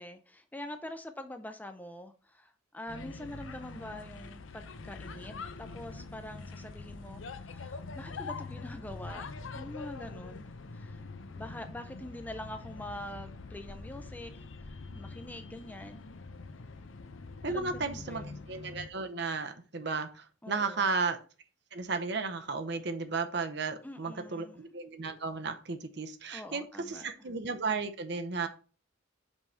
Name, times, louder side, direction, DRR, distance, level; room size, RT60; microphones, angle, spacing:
voice 1, 0.0-9.2 9.5-16.1 17.5-18.5 20.4-20.9 23.8-24.6 26.3-27.3, left 1 dB, 10° left, 0.5 m, -45 dB
sound 1, 2.9-18.9, left 3 dB, 80° left, 0.7 m, -44 dB
voice 2, 17.4-21.2 21.7-28.5, right 4 dB, 60° right, 0.8 m, -34 dB
5.4 x 4.7 x 5.5 m
head